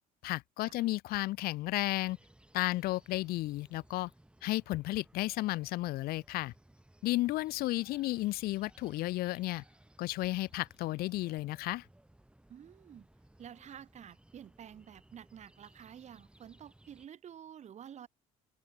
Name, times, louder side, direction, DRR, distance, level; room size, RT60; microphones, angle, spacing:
voice 1, 0.2-2.2 2.5-4.1 4.4-6.5 7.0-9.6 10.0-11.8, left 18 dB, 70° left, 0.6 m, -33 dB
sound 1, 1.9-17.1, right 1 dB, 5° right, 2.7 m, -62 dB
voice 2, 12.5-13.1 13.4-18.1, right 9 dB, 45° right, 1.2 m, -50 dB
open air
supercardioid pair, 85°, 16 cm